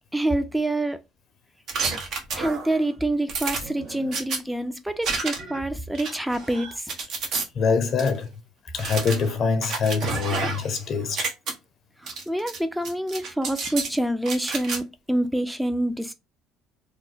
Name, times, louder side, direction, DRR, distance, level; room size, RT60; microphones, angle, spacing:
voice 1, 0.1-1.0 2.3-6.9 12.0-16.1, right 1 dB, 5° right, 0.5 m, -26 dB
sound 1, 1.7-2.8 3.3-4.4 5.0-5.6 5.9-7.4 8.0-8.1 8.8-10.8 11.0-11.5 12.1-12.6 12.8-13.9 14.2-14.8, right 4 dB, 60° right, 1.0 m, -30 dB
voice 2, 7.6-8.3 8.7-11.3, left 5 dB, 50° left, 0.6 m, -24 dB
2.8 x 2.1 x 3.9 m
cardioid pair, 105°, 0 cm